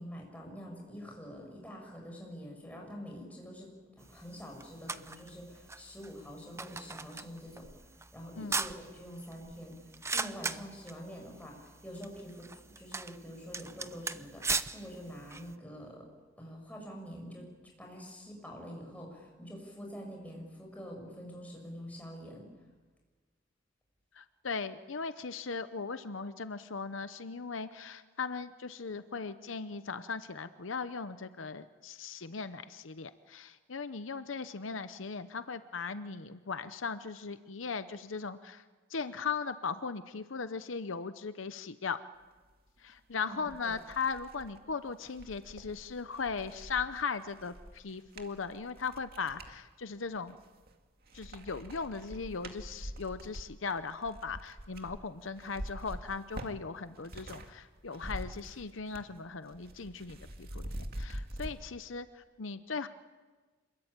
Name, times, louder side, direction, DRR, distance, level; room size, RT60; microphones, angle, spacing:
voice 1, 0.0-3.7 4.0-7.6 8.1-9.8 10.1-12.5 12.8-16.0 16.4-17.5 17.8-22.5 43.2-43.8, equal, 10° left, 1 dB, 7.2 m, -46 dB
sound 1, 4.0-15.6, right 4 dB, 15° right, 0.7 m, -40 dB
voice 2, 24.2-38.6 38.9-42.0 42.8-50.4 51.1-62.9, left 5 dB, 75° left, 11 dB, 0.8 m, -38 dB
sound 2, 42.9-43.0 43.4-49.6 50.1-50.8 51.1-57.5 57.8-59.2 59.4-61.5, right 1 dB, 50° right, 2.2 m, -45 dB
26.5 x 22.0 x 9.0 m, 1.4 s
head